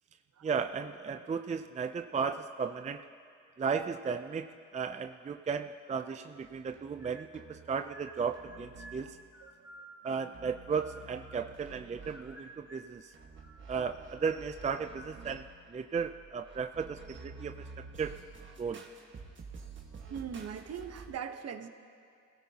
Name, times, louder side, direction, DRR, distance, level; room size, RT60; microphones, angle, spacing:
voice 1, 0.4-3.1 3.6-9.2 10.0-13.1 13.7-18.1 18.6-18.8, right 6 dB, 25° right, 7 dB, 0.5 m, -35 dB
sound 1, 6.4-9.5 10.3-21.1, right 4 dB, 40° right, 1.5 m, -51 dB
sound 2, 7.0-7.6 7.9-11.7 12.0-13.0 13.3-15.2, right 1 dB, 10° right, 1.9 m, -53 dB
voice 2, 20.1-21.7, right 7 dB, 55° right, 8 dB, 1.0 m, -40 dB
26.5 x 17.0 x 2.9 m, 2.3 s
cardioid pair, 90°, 30 cm